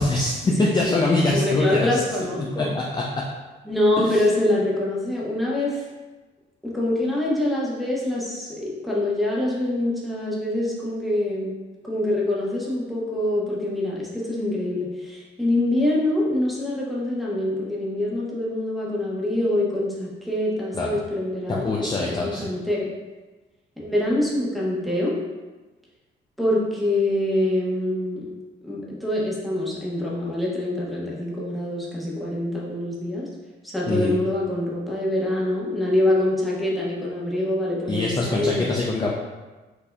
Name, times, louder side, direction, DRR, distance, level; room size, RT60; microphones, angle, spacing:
voice 1, 0.0-2.0 2.4-3.2 4.0-4.2 20.7-20.9 21.5-22.5 33.9-34.1 37.9-39.1, left 2 dB, 20° left, -3 dB, 0.4 m, -23 dB
voice 2, 1.3-2.7 3.6-5.8 6.6-11.5 11.8-22.9 23.8-25.2 26.4-28.2 28.6-33.3 33.7-38.8, left 1 dB, ahead, -6 dB, 0.9 m, -25 dB
4.5 x 2.7 x 2.2 m, 1.2 s
cardioid pair, 90°, 20 cm